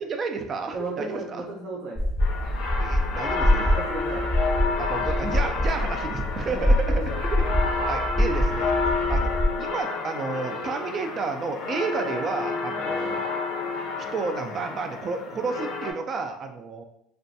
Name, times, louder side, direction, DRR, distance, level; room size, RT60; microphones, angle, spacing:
voice 1, 0.0-1.4 2.8-3.8 4.8-6.9 7.2-9.3 9.6-13.2 14.1-16.8, right 4 dB, 40° right, 5 dB, 0.3 m, -31 dB
voice 2, 0.7-2.0 3.7-4.3 6.4-7.2 12.8-13.0, right 3 dB, 70° right, -4 dB, 0.8 m, -34 dB
sound 1, 2.0-9.5, left 1 dB, 5° right, 0.7 m, -25 dB
sound 2, 2.2-15.9, left 4 dB, 75° left, 0.5 m, -30 dB
2.4 x 2.2 x 2.6 m, 0.75 s
supercardioid pair, 100°, 0 cm